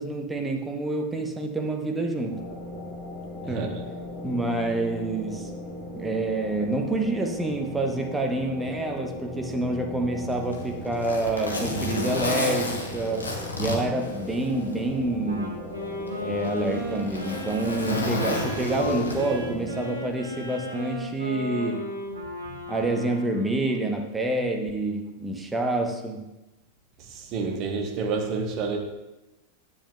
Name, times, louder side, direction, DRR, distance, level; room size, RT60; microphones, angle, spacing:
voice 1, 0.0-2.5 3.5-3.8 4.2-5.5 6.0-13.3 13.6-15.6 16.2-21.9 22.7-26.3, right 2 dB, 10° right, 0.8 m, -27 dB
sound 1, 2.3-19.8, left 1 dB, 10° left, 2.8 m, -38 dB
voice 2, 3.4-3.8 22.5-22.6 27.0-28.8, right 4 dB, 40° right, 1.0 m, -29 dB
Zipper (clothing), 10.3-14.8 15.2-15.3 16.1-19.5 20.7-20.9, left 2 dB, 75° left, 1.1 m, -31 dB
Wind instrument woodwind instrument, 15.2-23.5, left 1 dB, 75° right, 2.1 m, -35 dB
10.0 x 7.3 x 2.3 m
figure-of-eight pair, 90°, 0 cm